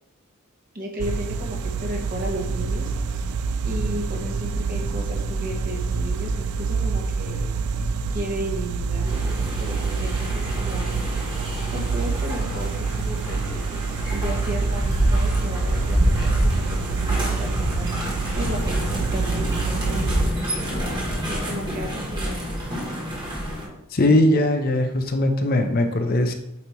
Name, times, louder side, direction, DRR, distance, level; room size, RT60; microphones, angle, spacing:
voice 1, 0.7-3.3 3.6-7.5 8.1-11.1 11.7-12.7 12.9-22.4, equal, 40° right, -1 dB, 1.4 m, -34 dB
sound 1, 1.0-20.3, right 4 dB, 85° right, 0.4 m, -26 dB
sound 2, 9.0-23.7, equal, 20° right, 1.6 m, -27 dB
voice 2, 23.9-26.3, left 1 dB, 40° left, 6 dB, 0.6 m, -20 dB
8.5 x 2.9 x 4.5 m, 0.86 s
head